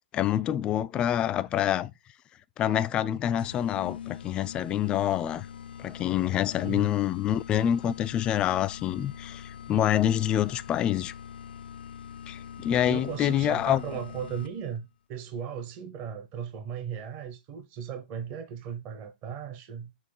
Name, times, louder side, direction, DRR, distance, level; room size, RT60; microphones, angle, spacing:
voice 1, 0.1-1.9 2.6-5.5 5.8-11.1 12.3-13.8, left 11 dB, 20° left, 0.3 m, -26 dB
sound 1, 3.4-14.8, left 8 dB, 90° left, 0.4 m, -43 dB
voice 2, 6.6-6.9 12.8-19.9, right 8 dB, 30° right, 0.8 m, -37 dB
6.4 x 3.0 x 5.5 m
hypercardioid pair, 150°, 5 cm